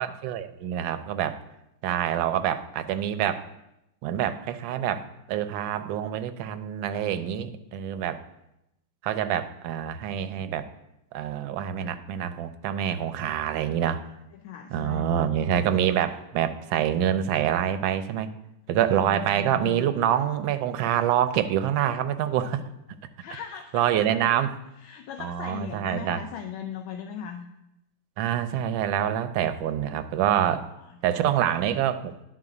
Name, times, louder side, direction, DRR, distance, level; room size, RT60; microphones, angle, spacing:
voice 1, 0.0-1.4 1.8-3.4 4.0-8.2 9.0-10.7 11.1-14.0 14.7-18.3 18.7-22.7 23.7-24.5 25.2-26.2 28.2-30.7 31.0-32.2, right 10 dB, 80° right, 10 dB, 1.3 m, -26 dB
voice 2, 14.3-15.3 18.9-19.8 23.2-24.3 24.8-27.5 30.6-31.3, left 7 dB, 80° left, 5 dB, 1.3 m, -39 dB
11.0 x 4.1 x 4.8 m, 0.86 s
omnidirectional pair, 2.2 m